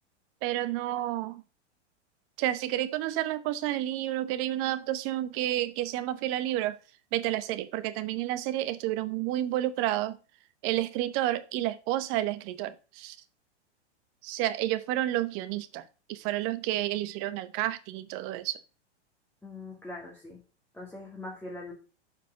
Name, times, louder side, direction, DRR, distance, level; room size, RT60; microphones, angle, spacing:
voice 1, 0.4-1.4 2.4-6.8 7.1-10.2 10.6-13.2 14.2-18.6, right 14 dB, 40° right, 0.9 m, -30 dB
voice 2, 19.4-20.4 20.7-21.7, left 2 dB, 5° left, 2.3 m, -42 dB
7.3 x 5.1 x 6.9 m
hypercardioid pair, 115°, 35 cm